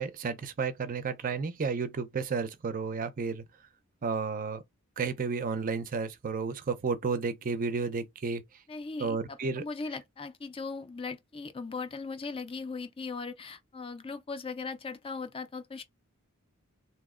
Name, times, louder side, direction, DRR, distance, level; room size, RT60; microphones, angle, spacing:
voice 1, 0.0-3.4 4.0-4.6 5.0-8.4 9.0-9.6, right 5 dB, 40° right, 0.5 m, -32 dB
voice 2, 8.7-15.8, left 4 dB, 25° left, 0.4 m, -39 dB
2.7 x 2.0 x 3.6 m
head